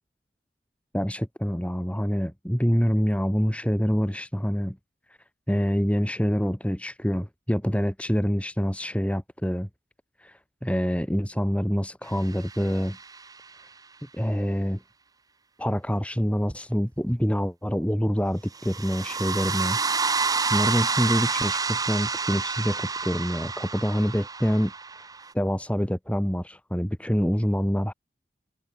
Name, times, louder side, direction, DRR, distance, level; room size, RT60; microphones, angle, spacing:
voice 1, 0.9-4.8 5.5-9.7 10.2-13.0 14.1-14.8 15.6-19.8 20.5-24.7 25.3-27.9, equal, 5° left, 5.2 m, -26 dB
sound 1, 12.3-13.3 18.6-25.3, right 4 dB, 20° right, 1.1 m, -29 dB
head